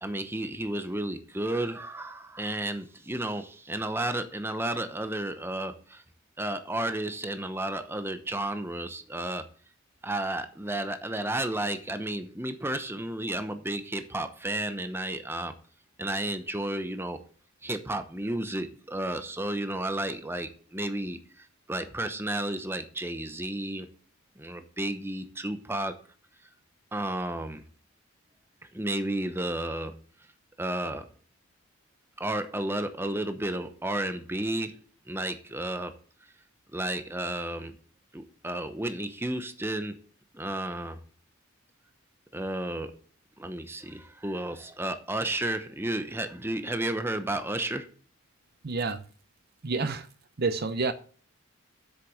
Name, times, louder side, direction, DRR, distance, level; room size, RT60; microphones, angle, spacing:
voice 1, 0.0-6.0 6.4-9.4 10.0-15.5 16.0-17.2 17.6-23.9 24.4-25.9 26.9-27.6 28.7-29.9 30.6-31.1 32.2-34.8 35.1-35.9 36.7-37.7 38.1-40.0 40.3-41.0 42.3-42.9 43.4-47.9, right 1 dB, 10° right, 0.9 m, -32 dB
voice 2, 48.6-49.0 49.6-50.1 50.4-50.9, right 4 dB, 50° right, 0.6 m, -28 dB
8.0 x 6.7 x 7.0 m
head